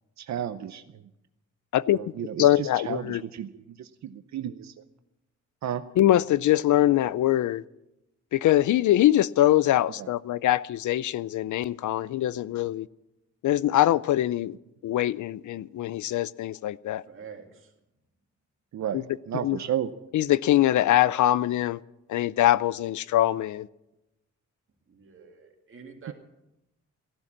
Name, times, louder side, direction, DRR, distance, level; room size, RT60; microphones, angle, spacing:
voice 1, 0.2-1.0 1.9-4.7 5.6-5.8 10.0-10.1 18.7-19.9 26.1-26.2, right 10 dB, 65° right, 0.7 m, -33 dB
voice 2, 2.4-3.2 6.0-7.6 8.3-12.9 13.4-14.5 14.8-17.0 18.9-19.0 19.4-19.6 20.1-21.8 22.1-23.7, left 13 dB, 80° left, 0.5 m, -23 dB
voice 3, 17.1-17.7 24.9-26.1, right 6 dB, 45° right, 2.4 m, -46 dB
15.5 x 12.0 x 7.3 m
wide cardioid pair, 160°, 30 cm